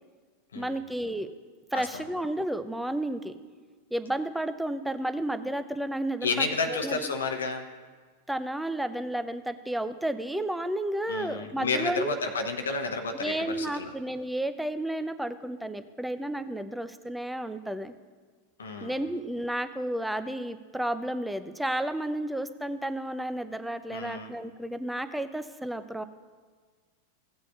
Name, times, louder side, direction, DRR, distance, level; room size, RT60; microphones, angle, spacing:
voice 1, 0.5-1.3 1.7-3.4 3.9-7.0 8.3-12.2 13.2-17.9 18.8-26.0, right 1 dB, 5° right, 11 dB, 0.5 m, -32 dB
voice 2, 1.7-2.0 6.2-7.7 11.1-13.9 18.6-19.0 23.9-24.3, left 4 dB, 70° left, 5 dB, 0.9 m, -31 dB
16.5 x 8.2 x 2.4 m, 1.5 s
figure-of-eight pair, 90°, 0 cm